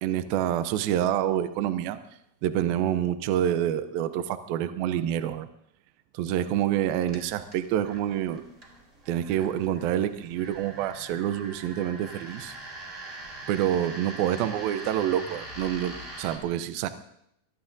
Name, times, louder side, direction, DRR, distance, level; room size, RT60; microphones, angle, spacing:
voice 1, 0.0-2.0 2.4-5.5 6.1-8.4 9.1-12.5 13.5-16.9, right 11 dB, 80° right, 10 dB, 2.5 m, -27 dB
sound 1, 7.0-16.4, right 2 dB, 20° right, 3.3 m, -43 dB
24.5 x 20.5 x 2.6 m, 0.74 s
omnidirectional pair, 4.4 m